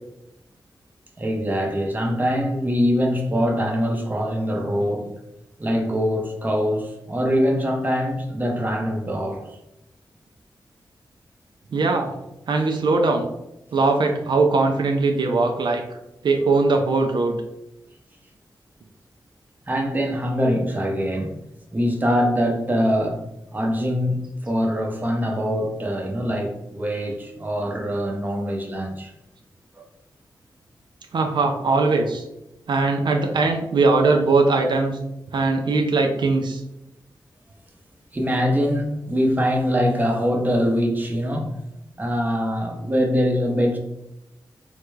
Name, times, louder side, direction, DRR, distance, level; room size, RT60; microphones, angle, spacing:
voice 1, 1.2-5.1 5.6-9.4 19.7-21.3 21.7-23.2 23.5-29.1 29.8-29.9 38.1-41.5 42.0-43.8, equal, 20° right, 1 dB, 0.7 m, -23 dB
voice 2, 11.7-12.1 12.5-13.3 13.7-15.8 16.2-17.4 31.1-32.2 32.7-35.0 35.3-36.6, right 3 dB, 75° right, 3 dB, 0.4 m, -20 dB
3.5 x 2.2 x 3.1 m, 0.89 s
wide cardioid pair, 80°, 8 cm